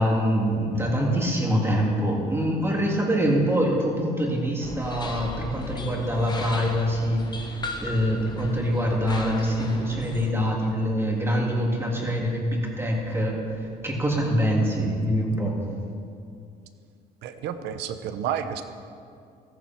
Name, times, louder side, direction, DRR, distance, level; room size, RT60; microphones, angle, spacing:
voice 1, 0.0-15.6, equal, 15° right, -2 dB, 3.3 m, -25 dB
sound 1, 4.6-10.3, left 3 dB, 25° left, 1.2 m, -37 dB
voice 2, 17.2-18.6, right 9 dB, 85° right, 9 dB, 1.0 m, -30 dB
15.5 x 14.0 x 4.7 m, 2.4 s
cardioid pair, 110°, 17 cm